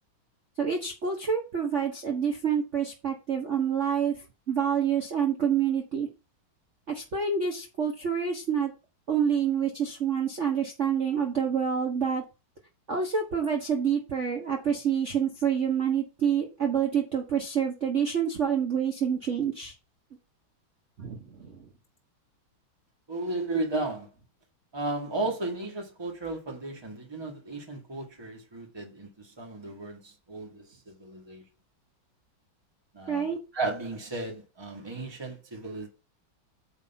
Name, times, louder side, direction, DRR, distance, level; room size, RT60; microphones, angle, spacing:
voice 1, 0.6-6.1 6.9-8.7 9.1-12.2 12.9-19.7 21.0-21.7 33.1-33.4, right 7 dB, 40° right, 1.3 m, -27 dB
voice 2, 23.1-24.1 24.7-31.4 32.9-35.9, right 2 dB, 15° right, 1.4 m, -34 dB
8.8 x 3.4 x 5.7 m
omnidirectional pair, 2.3 m